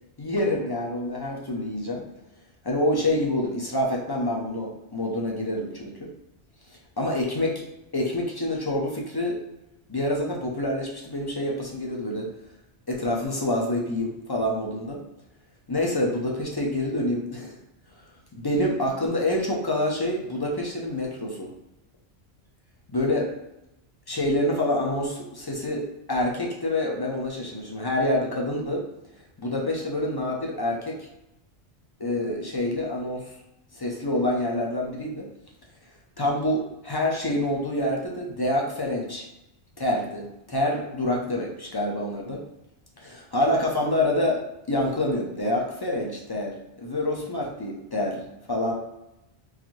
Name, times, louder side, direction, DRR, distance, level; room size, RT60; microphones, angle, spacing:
voice 1, 0.2-2.0 2.6-6.1 7.0-7.6 7.9-9.4 9.9-12.3 12.9-15.0 15.7-17.6 18.3-21.5 22.9-23.3 24.1-28.8 29.4-31.1 32.0-33.3 33.7-35.3 36.2-39.2 39.8-42.4 43.0-44.4 44.7-48.2 48.5-48.7, left 1 dB, 30° left, -1 dB, 0.4 m, -27 dB
3.9 x 2.6 x 3.0 m, 0.91 s
omnidirectional pair, 1.1 m